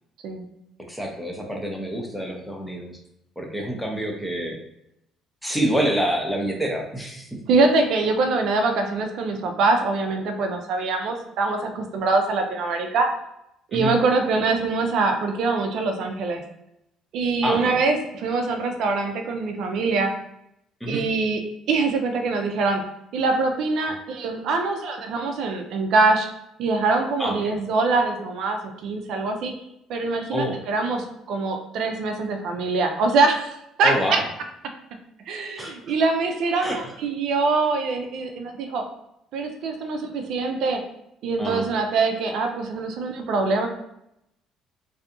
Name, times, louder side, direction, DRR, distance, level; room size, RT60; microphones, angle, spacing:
voice 1, 0.9-2.9 3.4-4.6 5.4-7.3 13.7-13.9 17.4-17.8 20.8-21.0 23.8-24.0 27.2-27.5 30.3-30.6 33.8-34.2 35.6-35.9 36.6-36.9 41.4-41.7, equal, 5° left, 1 dB, 0.6 m, -27 dB
voice 2, 7.5-13.1 13.7-16.4 17.1-20.1 20.9-21.4 21.7-22.8 23.1-26.3 26.6-29.5 29.9-34.2 35.3-38.8 39.3-40.8 41.2-43.7, right 3 dB, 70° right, 4 dB, 0.4 m, -23 dB
2.6 x 2.3 x 2.5 m, 0.81 s
supercardioid pair, 90°, 0 cm